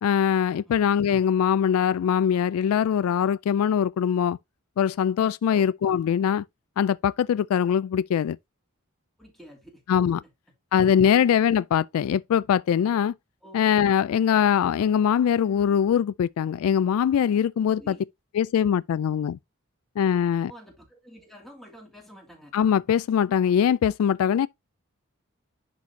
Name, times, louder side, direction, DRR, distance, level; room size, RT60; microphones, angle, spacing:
voice 1, 0.0-4.4 4.8-6.4 6.8-8.4 9.9-10.2 10.7-13.1 13.5-17.9 18.3-19.4 20.0-20.5 22.5-24.5, left 8 dB, 85° left, 0.3 m, -22 dB
voice 2, 9.2-10.0 10.2-10.3 13.4-13.6 17.7-18.0 20.5-22.5, equal, ahead, 2.4 m, -48 dB
10.5 x 4.1 x 2.7 m
head